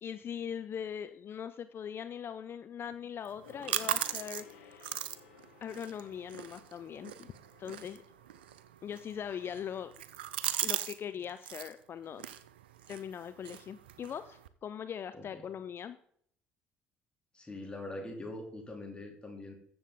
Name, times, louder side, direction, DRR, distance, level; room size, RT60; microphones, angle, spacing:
voice 1, 0.0-5.0 5.6-7.3 7.6-8.0 8.8-9.9 10.6-12.2 12.9-16.0, left 8 dB, 45° left, 12 dB, 0.5 m, -41 dB
sound 1, 3.3-11.0 11.2-11.7 12.2-14.5, right 11 dB, 85° right, 0.5 m, -39 dB
Gong, 3.4-9.3 9.6-9.7, left 8 dB, 85° left, 1.1 m, -57 dB
voice 2, 17.3-19.5, left 2 dB, 20° left, 1 dB, 3.0 m, -43 dB
13.5 x 7.1 x 3.9 m, 0.65 s
hypercardioid pair, 55°, 5 cm